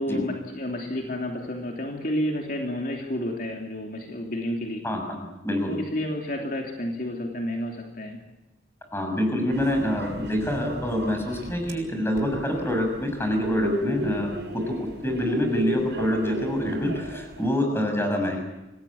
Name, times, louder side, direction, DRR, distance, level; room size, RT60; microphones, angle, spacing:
voice 1, 0.0-4.8 5.7-8.2, left 1 dB, 50° left, 1 dB, 3.0 m, -30 dB
voice 2, 4.8-5.8 8.9-14.8 15.0-18.4, left 1 dB, 15° left, 4 dB, 6.3 m, -26 dB
sound 1, 9.5-11.7 12.2-17.5, equal, 70° right, 6.9 m, -33 dB
26.5 x 19.0 x 8.6 m, 1.0 s
head